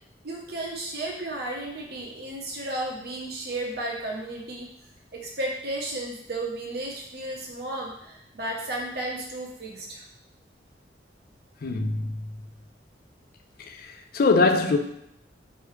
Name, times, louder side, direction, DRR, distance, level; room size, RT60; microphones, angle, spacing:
voice 1, 0.2-4.7 5.1-10.0, right 1 dB, 60° right, 1.0 m, -33 dB
voice 2, 11.6-12.1 13.6-14.8, left 3 dB, 55° left, 0.4 m, -23 dB
4.8 x 3.0 x 3.2 m
head